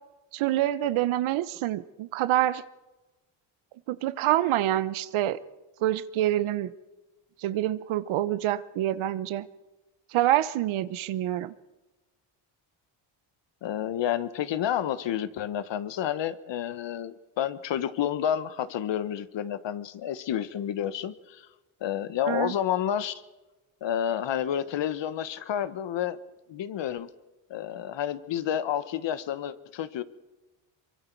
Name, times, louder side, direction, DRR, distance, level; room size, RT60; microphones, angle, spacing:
voice 1, 0.3-2.6 3.9-5.4 5.8-6.7 7.4-9.5 10.1-11.5 22.3-22.5, right 13 dB, 75° right, 15 dB, 1.1 m, -26 dB
voice 2, 13.6-21.5 21.8-23.1 23.8-26.2 26.5-27.1 27.5-30.0, left 10 dB, 60° left, 14 dB, 1.3 m, -30 dB
24.0 x 23.0 x 4.7 m, 1.1 s
supercardioid pair, 80°, 49 cm